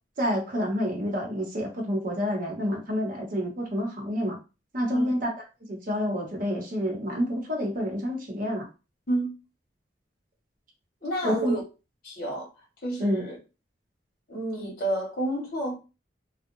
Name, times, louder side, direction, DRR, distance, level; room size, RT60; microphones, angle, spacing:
voice 1, 0.2-4.4 4.7-5.3 5.7-8.7 11.2-11.6 13.0-13.2, equal, 50° right, 1.0 m, -28 dB
voice 2, 11.0-11.6 12.0-12.5 12.8-13.4 14.3-15.7, right 1 dB, 55° left, 1.3 m, -30 dB
2.7 x 2.2 x 2.6 m
head